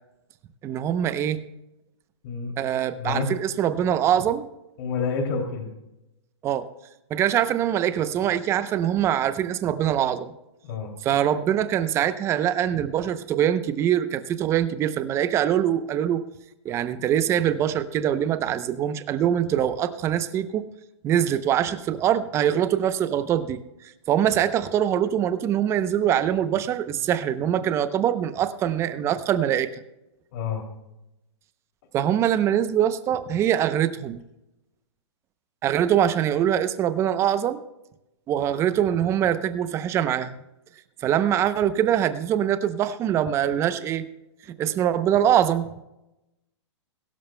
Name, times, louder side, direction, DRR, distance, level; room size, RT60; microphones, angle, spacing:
voice 1, 0.6-1.4 2.6-4.5 6.4-6.7 7.1-10.3 11.0-16.2 16.6-20.7 21.0-29.8 31.9-34.2 35.6-37.6 38.3-40.4 41.0-44.1 44.6-45.7, right 10 dB, 20° right, 12 dB, 0.6 m, -23 dB
voice 2, 3.0-3.3 4.8-5.7 10.7-10.9 30.3-30.6, left 5 dB, 45° left, 2 dB, 2.7 m, -28 dB
22.0 x 12.5 x 2.2 m, 0.92 s
hypercardioid pair, 150°, 15 cm